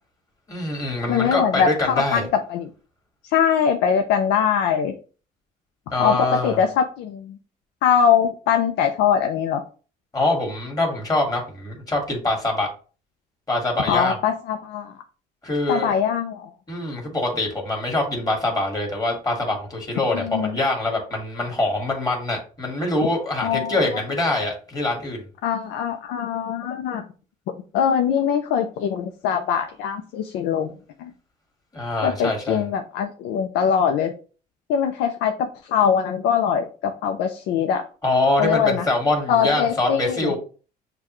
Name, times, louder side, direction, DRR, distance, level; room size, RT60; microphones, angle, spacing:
voice 1, 0.5-2.3 5.9-6.6 10.1-12.7 13.5-14.2 15.4-15.9 16.7-25.2 31.7-32.6 38.0-40.4, left 2 dB, 20° left, 0 dB, 1.8 m, -24 dB
voice 2, 1.1-2.2 2.5-2.7 3.3-4.9 6.0-7.4 7.8-9.6 13.9-14.9 15.7-16.5 20.1-20.6 23.4-23.8 25.4-27.0 27.7-30.7 31.0-31.1 32.0-34.1 34.7-37.8 38.4-38.8 39.3-40.3, left 7 dB, 85° left, 5 dB, 0.5 m, -22 dB
6.7 x 2.3 x 3.0 m, 0.37 s
cardioid pair, 110°, 17 cm